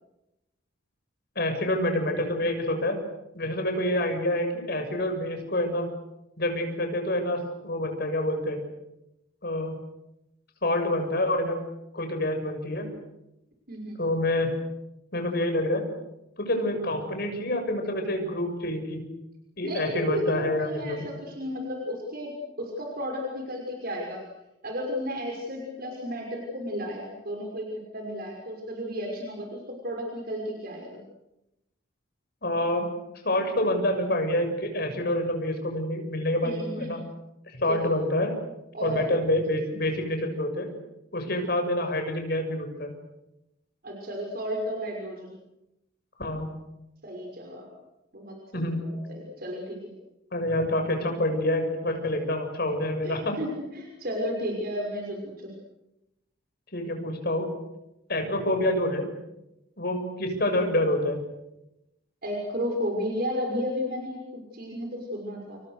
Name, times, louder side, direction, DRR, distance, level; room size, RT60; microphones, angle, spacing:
voice 1, 1.4-3.0 3.3-5.9 6.4-8.6 9.4-9.8 10.6-11.6 11.9-12.9 14.0-14.5 15.1-15.8 16.4-19.0 19.6-21.1 32.4-32.9 33.2-37.0 37.5-38.3 38.8-40.7 41.1-42.9 46.2-46.5 48.5-48.8 50.3-53.3 56.7-57.5 58.1-59.1 59.8-61.2, left 1 dB, 50° left, 5 dB, 6.9 m, -27 dB
voice 2, 13.7-14.0 19.6-24.2 24.6-31.0 36.4-37.0 37.7-37.9 38.7-39.0 43.8-45.3 47.0-47.7 48.1-49.8 53.0-55.5 62.2-65.6, equal, 50° right, 1 dB, 6.0 m, -33 dB
30.0 x 28.5 x 6.6 m, 0.91 s
head